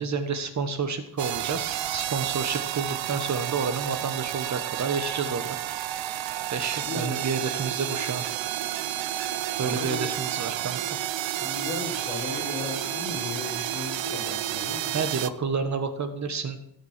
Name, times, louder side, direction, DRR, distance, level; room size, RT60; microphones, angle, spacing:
voice 1, 0.0-5.6 6.5-8.2 9.6-10.8 14.9-16.6, right 5 dB, 35° right, 9 dB, 1.5 m, -30 dB
sound 1, 1.2-15.3, right 13 dB, 70° right, 0.8 m, -31 dB
voice 2, 6.9-7.3 9.6-10.0 11.4-15.0, left 3 dB, 30° left, -4 dB, 5.3 m, -35 dB
17.0 x 7.3 x 7.5 m, 0.71 s
cardioid pair, 160°, 47 cm